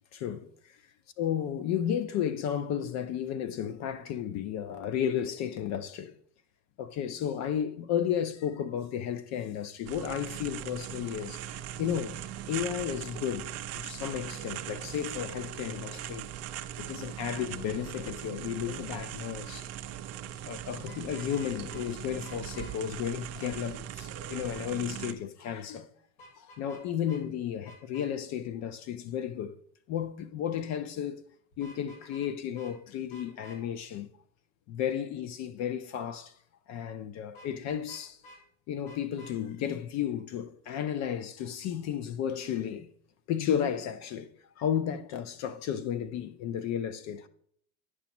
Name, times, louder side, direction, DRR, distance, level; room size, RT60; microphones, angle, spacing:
voice 1, 0.1-0.8 1.2-6.2 6.8-12.2 12.5-16.3 16.8-19.7 20.4-25.9 26.4-29.6 29.9-31.2 31.6-34.1 34.7-36.4 36.7-38.2 38.7-42.9 43.3-44.3 44.6-47.3, left 9 dB, 40° left, 0.6 m, -33 dB
sound 1, 9.8-25.1, right 11 dB, 40° right, 0.6 m, -40 dB
Vehicle horn car horn honking, 20.8-21.8 22.2-22.7 26.2-26.8 27.1-27.2 27.6-28.1 31.5-32.3 32.5-32.7 33.1-33.6 37.3-38.4 38.8-39.3, left 1 dB, 65° left, 3.0 m, -52 dB
9.6 x 5.9 x 3.0 m
hypercardioid pair, 100°, 40 cm